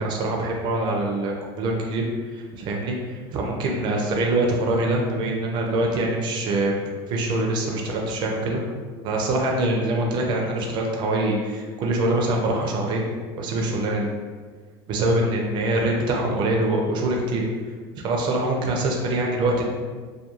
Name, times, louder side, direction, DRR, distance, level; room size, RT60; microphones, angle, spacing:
voice 1, 0.0-2.0 2.3-6.8 7.1-8.6 9.0-13.0 13.4-14.1 14.9-17.4 18.0-19.6, right 2 dB, 40° right, 0 dB, 0.5 m, -24 dB
2.3 x 2.3 x 2.9 m, 1.5 s
supercardioid pair, 140°, 12 cm